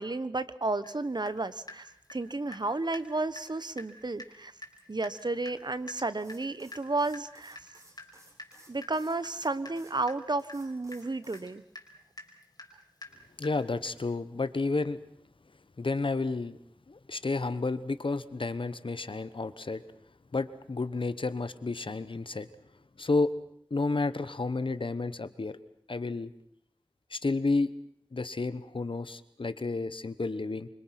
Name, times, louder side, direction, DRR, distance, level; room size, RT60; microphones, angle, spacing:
voice 1, 0.0-1.8 2.1-4.5 4.9-7.6 8.7-11.6, right 2 dB, 55° right, 14 dB, 1.2 m, -32 dB
Water tap faucet / Drip, 0.8-1.0 1.3-2.7 2.9-3.1 3.4-3.5 3.8-3.9 4.2-4.4 4.6-14.1, left 2 dB, 50° left, 4.9 m, -48 dB
sound 1, 6.1-9.9 10.4-11.5, right 1 dB, 35° right, 7.4 m, -58 dB
voice 2, 13.4-15.0 15.8-16.6 16.9-19.8 20.3-22.5 23.0-23.3 23.7-25.6 25.9-26.3 27.1-27.7 28.1-30.7, left 3 dB, 75° left, 14 dB, 1.2 m, -31 dB
26.0 x 25.0 x 6.0 m, 0.68 s
wide cardioid pair, 50°, 9 cm